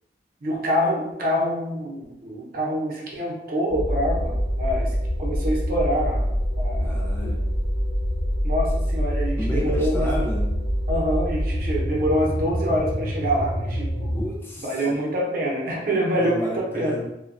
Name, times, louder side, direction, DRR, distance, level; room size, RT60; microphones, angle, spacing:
voice 1, 0.4-6.3 6.6-6.9 8.4-10.1 10.9-14.1 14.6-16.9, equal, 50° right, -3 dB, 0.7 m, -26 dB
sound 1, 3.7-14.3, equal, 65° left, 0.7 m, -25 dB
voice 2, 6.8-7.4 9.4-10.5 14.1-14.9 16.2-17.0, equal, 15° left, -3 dB, 0.5 m, -32 dB
2.9 x 2.2 x 2.4 m, 0.87 s
head